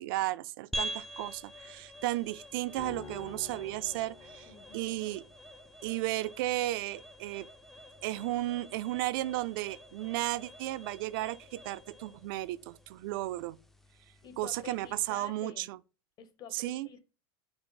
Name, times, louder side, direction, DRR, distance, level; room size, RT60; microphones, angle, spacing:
voice 1, 0.0-4.5 4.7-5.2 5.8-7.5 8.0-13.6 14.4-15.8 16.5-16.9, right 17 dB, 65° right, 0.4 m, -34 dB
sound 1, 0.7-15.3, equal, ahead, 0.4 m, -46 dB
sound 2, 2.8-5.2, left 5 dB, 65° left, 1.4 m, -48 dB
voice 2, 4.4-5.0 14.2-15.7 16.2-17.0, left 8 dB, 35° left, 1.0 m, -49 dB
5.3 x 2.0 x 4.8 m
supercardioid pair, 125°, 12 cm